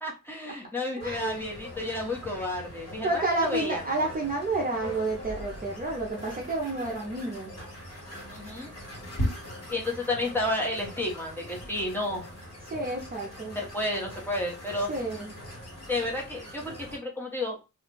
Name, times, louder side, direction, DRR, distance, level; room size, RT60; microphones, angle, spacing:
voice 1, 0.0-3.8 8.3-8.7 9.7-12.2 13.5-14.9 15.9-17.6, left 1 dB, 5° left, -3 dB, 0.9 m, -31 dB
sound 1, 1.0-17.0, equal, 45° left, 1.5 m, -40 dB
voice 2, 1.0-1.5 3.0-7.5 12.7-13.6 14.9-15.4, right 2 dB, 25° right, -1 dB, 0.5 m, -30 dB
2.5 x 2.2 x 3.7 m, 0.28 s
wide cardioid pair, 150°, 33 cm